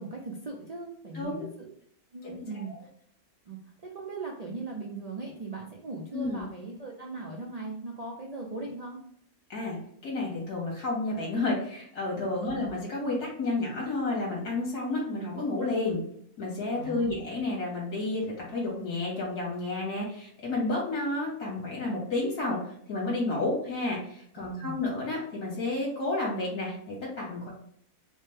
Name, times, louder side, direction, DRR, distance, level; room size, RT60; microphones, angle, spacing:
voice 1, 0.0-1.7 2.1-2.9 3.5-9.0 12.3-12.7 16.7-17.1 24.4-24.8, right 3 dB, 85° right, -1 dB, 0.3 m, -39 dB
voice 2, 1.1-1.5 2.2-2.3 2.6-2.7 6.1-6.4 9.5-9.8 10.0-16.0 16.4-22.6 22.9-27.5, left 2 dB, 85° left, -4 dB, 2.3 m, -31 dB
4.9 x 2.1 x 3.3 m, 0.66 s
omnidirectional pair, 1.6 m